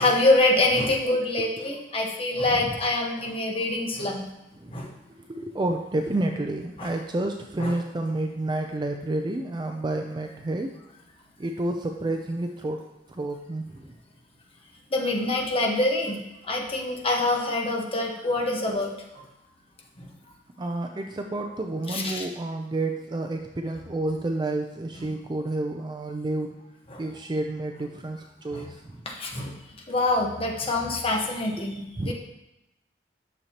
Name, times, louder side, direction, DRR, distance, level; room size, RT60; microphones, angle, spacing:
voice 1, 0.0-4.2 4.7-4.9 6.8-6.9 7.6-7.8 14.9-18.9 20.0-20.1 21.9-22.2 26.9-27.0 28.5-28.7 29.0-29.5 29.9-32.1, left 2 dB, 35° left, 0 dB, 1.2 m, -25 dB
voice 2, 5.3-10.7 11.4-12.8 13.1-13.9 20.6-26.5 27.0-29.0 32.0-32.1, right 2 dB, 25° right, 4 dB, 0.4 m, -30 dB
10.0 x 6.5 x 2.9 m, 0.92 s
head